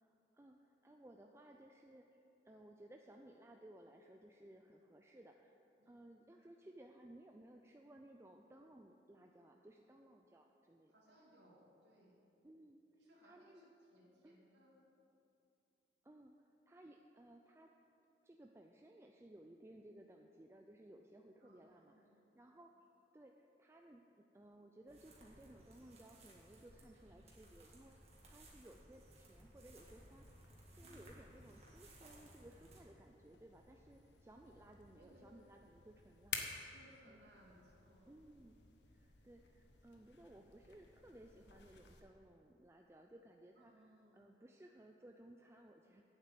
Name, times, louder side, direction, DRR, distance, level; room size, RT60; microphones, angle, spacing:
voice 1, 0.0-10.9 12.4-12.8 13.2-13.6 14.2-14.4 16.0-17.7 18.2-22.7 23.1-28.0 28.2-36.4 37.0-37.3 38.1-38.6 38.9-46.0, right 1 dB, 15° right, 2 dB, 0.4 m, -60 dB
voice 2, 5.8-6.5 10.9-12.2 12.9-14.8 21.4-22.2 30.8-31.4 34.9-35.5 36.7-38.1 43.6-44.3, equal, 85° right, -6 dB, 2.4 m, -66 dB
sound 1, 24.9-32.8, right 1 dB, 35° right, 1.7 m, -61 dB
sound 2, 30.1-42.0, left 6 dB, 75° left, 1.0 m, -54 dB
9.0 x 7.6 x 7.7 m, 2.7 s
head